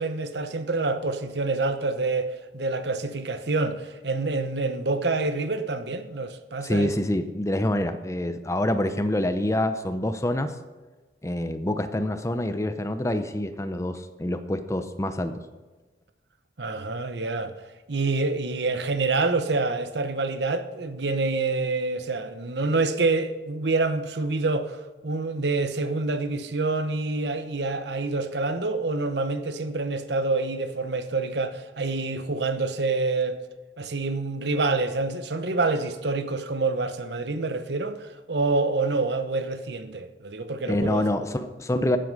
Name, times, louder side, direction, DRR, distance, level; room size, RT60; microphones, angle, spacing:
voice 1, 0.0-7.0 16.6-17.6 17.9-24.8 25.0-33.4 33.8-41.0, right 3 dB, 75° right, 0.9 m, -27 dB
voice 2, 6.6-10.5 11.2-15.4 40.7-42.0, left 1 dB, 15° left, 0.6 m, -26 dB
14.5 x 7.7 x 5.3 m
head